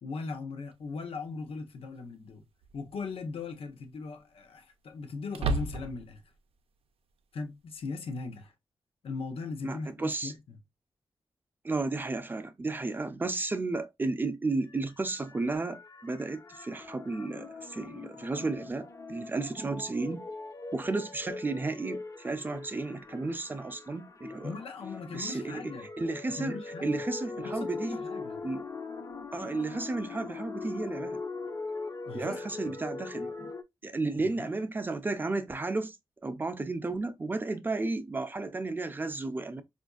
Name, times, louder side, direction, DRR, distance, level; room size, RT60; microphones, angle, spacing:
voice 1, 0.0-2.5 2.7-6.2 7.3-8.5 9.0-10.3 24.4-25.9 26.3-27.0 27.4-28.4 32.1-32.7 34.2-34.7, left 4 dB, 80° left, 0.7 m, -39 dB
sound 1, 0.7-0.8 2.6-3.0 3.4-3.5 5.3-6.2, right 3 dB, 85° right, 0.5 m, -32 dB
voice 2, 9.6-10.3 11.6-20.2 20.7-24.5 25.1-25.6 26.0-28.0 28.4-28.6 29.3-31.2 32.1-33.5 33.8-36.0 36.2-39.6, right 3 dB, 20° right, 0.4 m, -33 dB
sound 2, 14.7-33.6, left 3 dB, 35° left, 0.5 m, -41 dB
4.5 x 2.5 x 2.3 m
wide cardioid pair, 150°, 10 cm